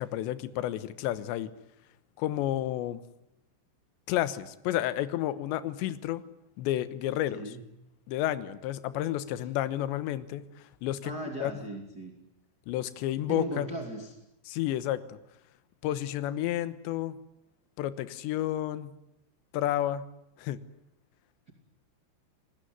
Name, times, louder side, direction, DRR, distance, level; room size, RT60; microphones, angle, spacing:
voice 1, 0.0-1.5 2.2-3.0 4.1-6.2 6.6-7.4 8.1-10.5 10.8-11.1 11.4-11.5 12.7-13.7 14.5-15.2 15.8-17.2 17.8-18.9 19.5-20.0 20.4-20.6, left 13 dB, 75° left, 14 dB, 3.1 m, -31 dB
voice 2, 7.3-7.7 9.4-9.5 11.0-12.2 13.3-14.2, right 1 dB, 25° right, 4 dB, 2.4 m, -37 dB
29.0 x 20.0 x 9.5 m, 0.86 s
omnidirectional pair, 5.7 m